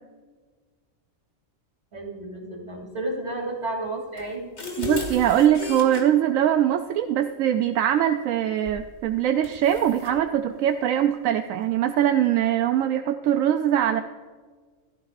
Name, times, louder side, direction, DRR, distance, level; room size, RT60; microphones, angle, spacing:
voice 1, 1.9-4.5, right 2 dB, 60° right, 0 dB, 3.2 m, -32 dB
sound 1, 4.2-6.0 8.7-8.9 9.4-10.2, left 4 dB, 55° left, 2.4 m, -34 dB
voice 2, 4.8-14.0, right 10 dB, 85° right, 7 dB, 1.0 m, -22 dB
15.5 x 12.5 x 2.5 m, 1.5 s
omnidirectional pair, 1.4 m